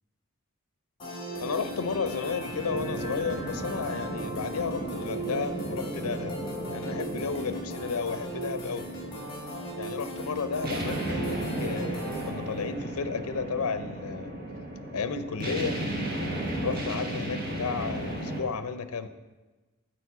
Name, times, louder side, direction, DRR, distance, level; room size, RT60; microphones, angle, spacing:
sound 1, 1.0-12.3, right 1 dB, 20° left, 2.4 m, -38 dB
sound 2, 1.3-18.4, right 1 dB, 40° right, 1.2 m, -35 dB
voice 1, 1.4-6.4 6.7-8.9 9.8-14.3 14.9-15.8 16.6-19.1, left 5 dB, 75° left, 11 dB, 0.5 m, -33 dB
9.2 x 4.3 x 7.1 m, 1.2 s
head